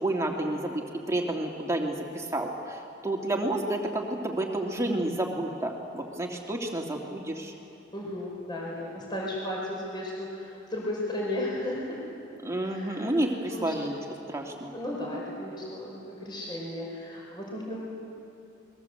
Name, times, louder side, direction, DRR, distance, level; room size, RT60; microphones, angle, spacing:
voice 1, 0.0-0.8 1.1-7.5 12.4-14.0 14.3-14.8, right 1 dB, 15° right, 0 dB, 2.6 m, -30 dB
voice 2, 7.9-12.0 12.6-13.0 13.5-13.9 14.7-17.8, left 1 dB, 25° left, -3 dB, 4.9 m, -35 dB
29.0 x 22.0 x 8.1 m, 2.7 s
head